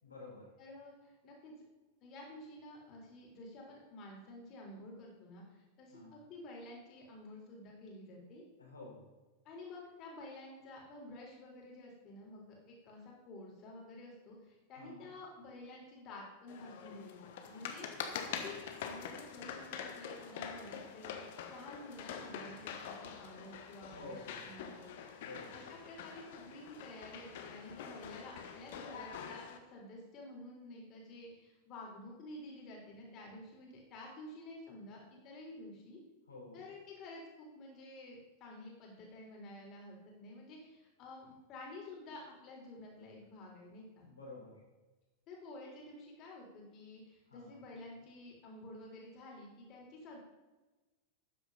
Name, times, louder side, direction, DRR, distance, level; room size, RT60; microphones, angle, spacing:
voice 1, 0.0-0.5 5.9-6.2 8.6-9.1 14.8-15.1 18.4-18.6 23.9-24.4 25.2-25.7 36.3-36.6 44.0-44.6 47.3-47.6, left 2 dB, 75° left, -3 dB, 4.2 m, -51 dB
voice 2, 0.6-1.5 2.0-8.4 9.5-18.6 18.8-24.8 25.5-36.0 36.5-44.1 45.3-50.2, left 2 dB, 35° left, -1 dB, 3.8 m, -51 dB
sound 1, 16.5-29.6, left 7 dB, 55° left, 1.3 m, -45 dB
13.0 x 9.4 x 4.1 m, 1.2 s
figure-of-eight pair, 90°, 0 cm